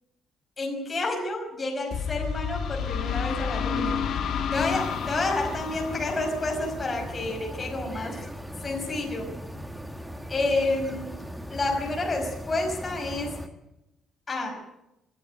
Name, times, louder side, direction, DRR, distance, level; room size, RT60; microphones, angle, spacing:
voice 1, 0.6-4.0 4.5-8.3 8.6-9.3 10.3-11.1 11.5-13.4 14.3-14.6, left 2 dB, 20° left, 0 dB, 5.2 m, -29 dB
sound 1, 1.9-7.5, left 7 dB, 60° left, 2.4 m, -31 dB
sound 2, 4.5-13.5, equal, ahead, 1.4 m, -38 dB
24.5 x 13.0 x 9.8 m, 0.92 s
cardioid pair, 155°, 0 cm